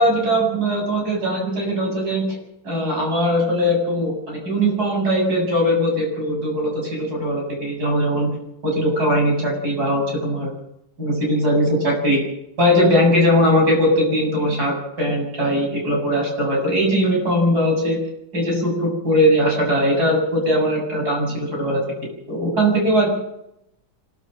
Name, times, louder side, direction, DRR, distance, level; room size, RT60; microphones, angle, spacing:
voice 1, 0.0-2.4 2.6-8.3 8.6-10.5 11.0-12.2 12.6-18.0 18.3-23.1, equal, 75° right, 0 dB, 8.3 m, -20 dB
25.0 x 14.0 x 7.8 m, 0.80 s
omnidirectional pair, 1.7 m